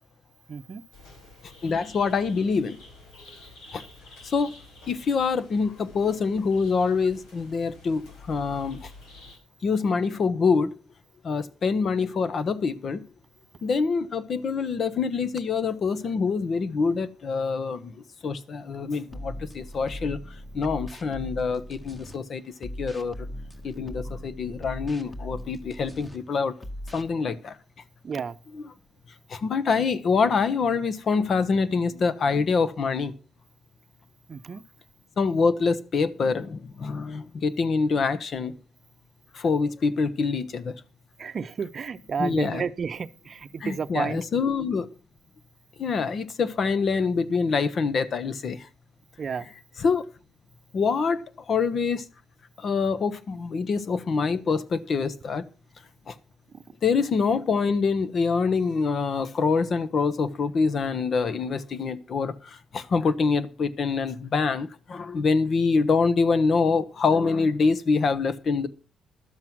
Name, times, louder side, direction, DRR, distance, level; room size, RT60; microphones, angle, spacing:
voice 1, 0.5-0.8 28.0-28.3 34.3-34.6 41.2-44.2 49.2-49.5, right 6 dB, 45° right, 0.7 m, -31 dB
sound 1, 0.9-9.4, left 2 dB, 85° left, 4.6 m, -49 dB
voice 2, 1.6-2.8 3.7-3.8 4.2-4.5 4.9-8.0 8.3-8.9 9.6-10.7 11.2-13.0 13.6-20.2 20.5-23.2 23.6-26.5 26.9-27.6 28.5-28.7 29.3-33.1 35.2-38.5 39.3-40.8 42.2-42.6 43.6-44.9 45.8-48.7 49.8-50.0 50.7-52.0 52.6-55.4 56.1-56.2 56.8-68.7, left 5 dB, 50° left, 1.0 m, -25 dB
sound 2, 19.1-22.2 22.6-26.2 26.6-27.1, equal, 20° left, 2.0 m, -39 dB
12.5 x 7.6 x 6.0 m
cardioid pair, 90°, 0 cm